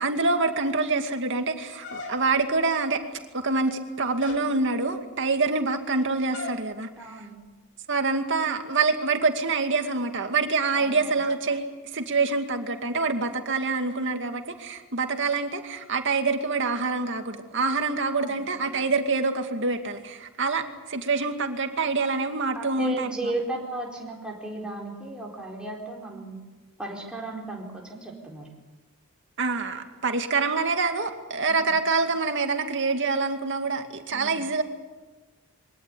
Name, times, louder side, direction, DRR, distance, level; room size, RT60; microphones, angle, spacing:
voice 1, 0.0-3.0 3.3-6.9 7.9-11.7 11.9-23.1 29.4-34.6, right 3 dB, 55° right, 5 dB, 2.3 m, -26 dB
Balloon Screetches, 1.8-2.6 3.4-3.8 4.2-4.5 6.3-6.7, left 3 dB, 55° left, 3.4 m, -39 dB
voice 2, 7.0-7.4 10.7-11.2 18.2-18.4 22.5-26.4 26.8-28.5 31.5-31.7 34.1-34.4, right 2 dB, 5° right, -3 dB, 4.4 m, -35 dB
23.5 x 18.0 x 10.0 m, 1.2 s
head